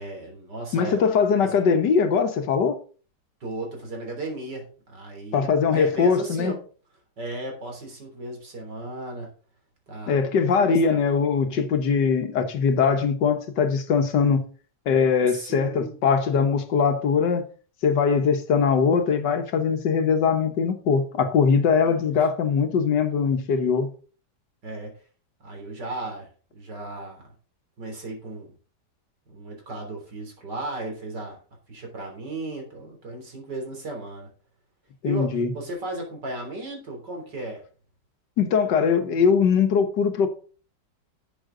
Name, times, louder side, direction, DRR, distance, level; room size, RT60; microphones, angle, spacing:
voice 1, 0.0-1.0 1.4-1.6 3.4-6.6 7.2-9.3 9.9-10.2 10.5-11.0 15.3-16.0 21.8-22.1 24.6-24.9 25.4-27.3 27.8-28.5 29.3-31.4 31.7-34.3 35.0-37.6, right 2 dB, 85° right, 4.0 m, -35 dB
voice 2, 0.7-2.8 5.3-6.5 10.1-14.4 14.9-17.4 17.8-23.9 35.0-35.5 38.4-40.3, left 6 dB, 85° left, 1.8 m, -21 dB
11.5 x 7.8 x 3.8 m
omnidirectional pair, 1.8 m